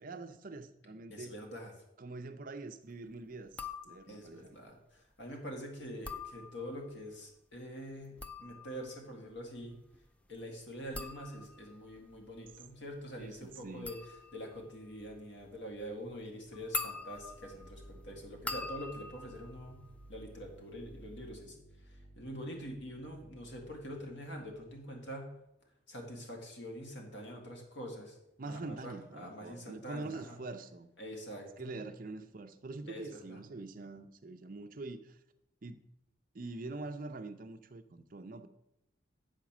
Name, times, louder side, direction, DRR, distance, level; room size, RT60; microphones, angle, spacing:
voice 1, 0.0-1.3 2.0-4.6 13.2-13.9 28.4-30.9 31.6-35.2 35.6-35.8 36.3-38.5, right 3 dB, 45° right, 9 dB, 0.5 m, -44 dB
voice 2, 1.1-1.7 4.1-9.8 10.3-14.0 14.3-19.8 20.1-21.6 21.8-25.3 25.9-28.2 28.4-30.4 31.0-31.7 32.9-33.4, equal, 70° left, 1 dB, 2.0 m, -45 dB
sound 1, 3.5-4.3 5.8-6.9 7.9-20.6 20.9-21.5, left 3 dB, 5° left, 0.3 m, -45 dB
sound 2, 17.2-24.9, right 1 dB, 45° left, 2.6 m, -56 dB
8.3 x 4.9 x 6.0 m, 0.84 s
head